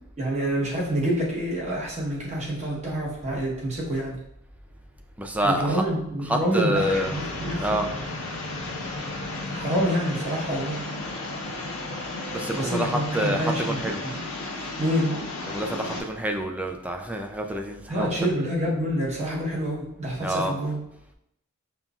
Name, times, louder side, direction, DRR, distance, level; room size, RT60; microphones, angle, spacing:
voice 1, 0.2-4.2 5.4-7.8 9.5-10.8 12.5-14.1 14.8-15.2 17.9-20.8, equal, 30° right, -5 dB, 1.1 m, -27 dB
voice 2, 5.2-5.8 6.3-7.1 7.6-7.9 12.3-14.0 15.5-18.1 20.2-20.6, right 1 dB, 5° right, 3 dB, 0.3 m, -27 dB
sound 1, 6.7-16.0, left 2 dB, 70° left, 0.8 m, -34 dB
5.5 x 2.4 x 2.4 m, 0.79 s
head